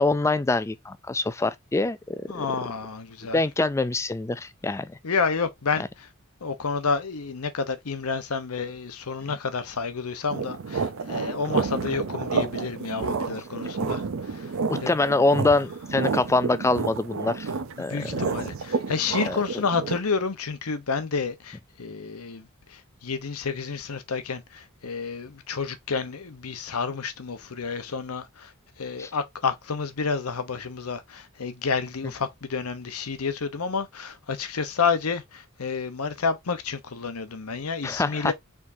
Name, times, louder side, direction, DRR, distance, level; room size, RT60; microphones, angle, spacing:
voice 1, 0.0-2.4 3.3-5.0 14.7-17.5 17.8-18.1 19.2-19.4 29.0-29.1 37.8-38.3, left 2 dB, 15° left, 0.3 m, -24 dB
voice 2, 2.3-3.4 5.0-6.1 6.4-14.5 14.8-14.9 17.8-28.5 28.8-38.3, left 5 dB, 90° left, 0.8 m, -30 dB
sound 1, 10.3-20.0, right 5 dB, 65° right, 0.6 m, -30 dB
4.7 x 3.6 x 2.6 m
head